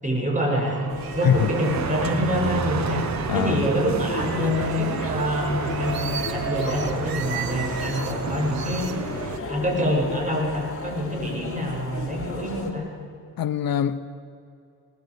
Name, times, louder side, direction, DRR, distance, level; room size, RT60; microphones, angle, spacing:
voice 1, 0.0-3.0 3.3-8.9 9.5-12.8, equal, 20° right, -1 dB, 7.4 m, -26 dB
sound 1, 0.6-3.7 4.2-8.2 8.5-9.4, right 7 dB, 75° right, 1.4 m, -36 dB
sound 2, 0.9-12.7, left 4 dB, 35° left, 3.5 m, -35 dB
sound 3, 1.4-9.4, right 6 dB, 50° right, 1.2 m, -31 dB
voice 2, 3.3-3.6 13.4-14.0, left 9 dB, 70° left, 12 dB, 0.9 m, -23 dB
22.5 x 19.0 x 8.2 m, 2.4 s
cardioid pair, 95°, 36 cm